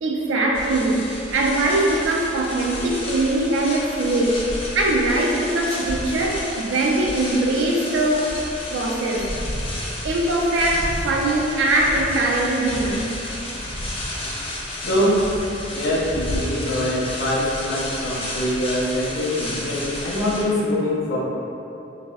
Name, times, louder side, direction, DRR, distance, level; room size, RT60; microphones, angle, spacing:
voice 1, 0.0-4.5 4.7-8.3 8.7-9.3 10.0-13.2, right 2 dB, 80° right, 0 dB, 0.4 m, -21 dB
sound 1, 0.5-20.4, left 1 dB, 30° left, 0.4 m, -33 dB
sound 2, 2.5-3.4 4.0-7.7 8.0-8.7 9.1-14.7 14.9-16.7, equal, 30° right, 0.7 m, -34 dB
voice 2, 14.8-15.2 15.7-21.2, left 1 dB, 75° left, -5 dB, 0.6 m, -23 dB
3.4 x 2.0 x 2.3 m, 2.9 s
head